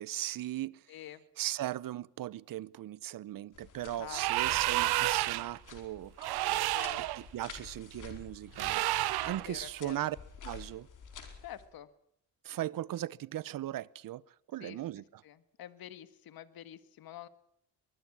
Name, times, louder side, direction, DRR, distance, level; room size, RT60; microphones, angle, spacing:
voice 1, 0.0-0.8 1.4-6.3 7.0-8.8 9.2-10.2 10.4-10.9 12.4-14.2 14.5-15.2, right 13 dB, 60° right, 0.8 m, -38 dB
voice 2, 0.9-1.2 3.8-4.6 6.5-7.1 9.2-10.0 11.4-11.9 14.6-14.8 15.2-17.3, left 11 dB, 70° left, 1.7 m, -48 dB
sound 1, 3.5-11.7, left 6 dB, 55° left, 4.9 m, -51 dB
sound 2, 4.1-5.6 6.2-7.2 8.6-9.5, right 17 dB, 90° right, 0.9 m, -30 dB
23.5 x 21.0 x 6.2 m
cardioid pair, 110°, 37 cm